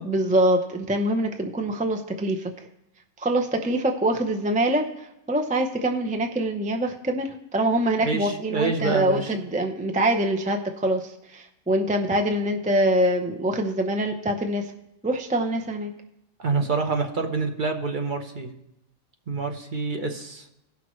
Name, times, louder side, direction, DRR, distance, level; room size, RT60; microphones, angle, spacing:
voice 1, 0.0-2.5 3.2-14.7 15.0-15.9, right 1 dB, 10° right, 3 dB, 0.3 m, -24 dB
voice 2, 8.0-9.2 16.4-18.5 19.3-20.4, right 4 dB, 40° right, 4 dB, 0.9 m, -27 dB
17.5 x 5.9 x 3.1 m, 0.85 s
omnidirectional pair, 1.4 m